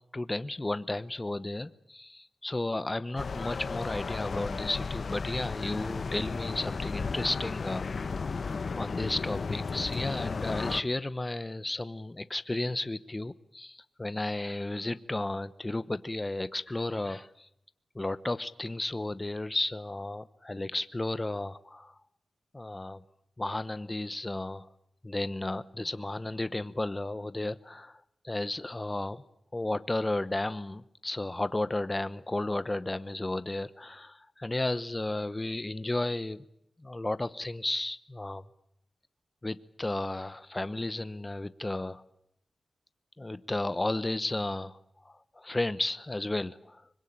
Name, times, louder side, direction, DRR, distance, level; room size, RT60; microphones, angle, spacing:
voice 1, 0.1-8.3 8.8-17.5 17.9-21.9 22.5-23.0 23.4-24.7 25.0-27.9 28.2-29.2 29.5-36.4 36.8-38.4 39.4-42.0 43.2-44.8 45.0-46.8, left 2 dB, 25° left, 14 dB, 0.9 m, -33 dB
sound 1, 3.2-10.8, left 4 dB, 60° left, 1.2 m, -34 dB
24.5 x 21.5 x 8.9 m, 0.79 s
cardioid pair, 75°, 0 cm